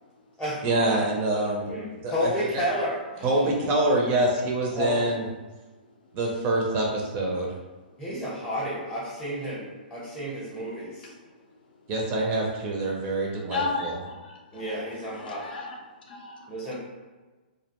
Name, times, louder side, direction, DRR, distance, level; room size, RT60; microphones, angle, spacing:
voice 1, 0.6-2.6 3.2-5.2 6.1-7.5 11.9-14.0, right 2 dB, 30° right, -1 dB, 0.4 m, -26 dB
voice 2, 1.7-3.5 4.7-5.0 8.0-11.1 14.5-15.4 16.5-16.8, equal, 10° left, -8 dB, 0.8 m, -31 dB
voice 3, 13.5-14.9 15.1-15.8 16.1-16.8, left 3 dB, 65° left, 0 dB, 0.6 m, -34 dB
2.3 x 2.1 x 2.9 m, 1.3 s
hypercardioid pair, 135°, 5 cm